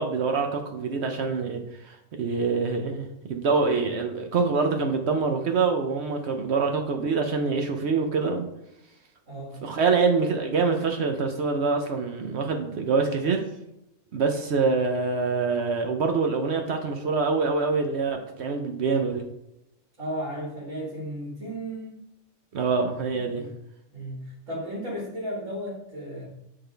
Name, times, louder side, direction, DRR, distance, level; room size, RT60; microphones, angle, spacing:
voice 1, 0.0-1.6 1.9-8.5 9.6-13.4 14.1-19.2 22.5-23.5, right 4 dB, 65° right, 4 dB, 0.9 m, -25 dB
voice 2, 9.3-9.6 20.0-21.9 23.1-23.5 23.9-26.3, equal, 85° right, -4 dB, 2.1 m, -34 dB
8.6 x 3.8 x 3.3 m, 0.83 s
omnidirectional pair, 1.3 m